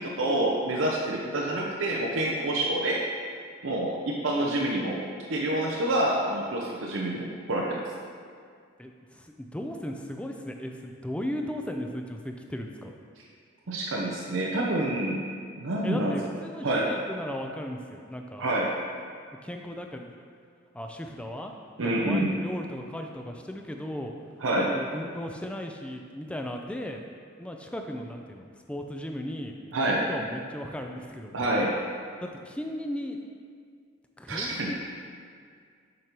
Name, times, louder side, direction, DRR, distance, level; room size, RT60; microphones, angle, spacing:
voice 1, 0.0-3.0 3.6-5.0 5.3-7.8 13.7-15.2 15.6-16.1 16.6-16.9 18.4-18.7 21.8-22.3 24.4-24.7 29.7-30.0 31.3-31.7 34.3-34.7, right 1 dB, 80° right, -2 dB, 0.6 m, -27 dB
voice 2, 8.8-13.0 15.8-18.5 19.4-20.1 20.7-21.5 21.8-24.1 24.6-27.0 27.4-29.5 29.9-31.5 32.2-33.2 34.2-34.9, left 1 dB, 5° left, 3 dB, 0.4 m, -36 dB
7.6 x 5.2 x 2.9 m, 2.1 s
head